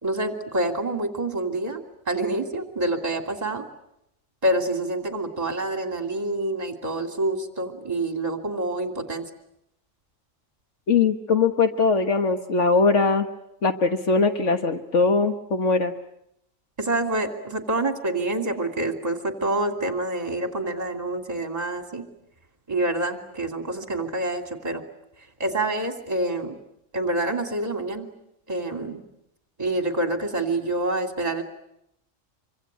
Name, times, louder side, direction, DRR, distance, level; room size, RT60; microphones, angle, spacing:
voice 1, 0.0-3.6 4.4-9.3 16.8-22.0 22.7-24.8 25.4-26.6 26.9-28.1 28.5-29.0 29.6-31.4, right 1 dB, 30° right, 5 dB, 2.8 m, -27 dB
voice 2, 10.9-13.3 13.6-15.9, left 4 dB, 65° left, 6 dB, 1.7 m, -21 dB
25.5 x 25.5 x 9.2 m, 0.80 s
omnidirectional pair, 1.3 m